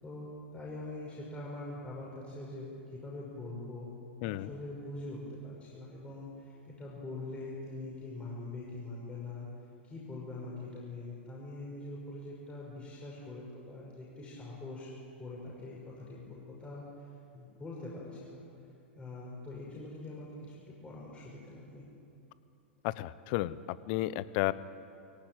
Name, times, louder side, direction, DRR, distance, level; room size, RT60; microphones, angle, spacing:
voice 1, 0.0-3.9 4.2-9.5 9.8-14.9 15.2-18.5 18.9-21.8, left 2 dB, 15° left, -5 dB, 6.0 m, -43 dB
voice 2, 4.2-4.5 22.8-24.5, left 17 dB, 50° left, 16 dB, 0.9 m, -33 dB
22.0 x 17.5 x 9.3 m, 2.7 s
hypercardioid pair, 105°, 7 cm